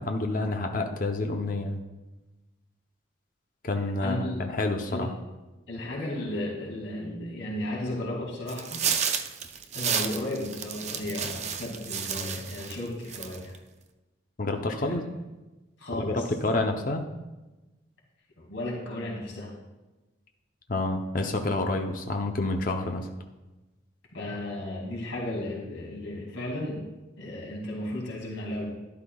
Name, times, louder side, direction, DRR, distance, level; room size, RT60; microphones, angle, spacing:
voice 1, 0.0-1.8 3.6-5.1 14.4-15.0 16.0-17.0 20.7-23.1, left 2 dB, 45° left, 4 dB, 0.7 m, -28 dB
voice 2, 4.0-4.4 4.9-5.1 5.7-8.8 9.7-13.5 14.8-15.1 15.8-16.3 18.4-19.5 24.1-26.9 27.2-28.7, left 1 dB, 80° left, -3 dB, 2.4 m, -34 dB
sound 1, 8.5-12.8 13.1-13.6, right 7 dB, 35° right, 0.5 m, -31 dB
12.0 x 11.0 x 2.3 m, 1.1 s
head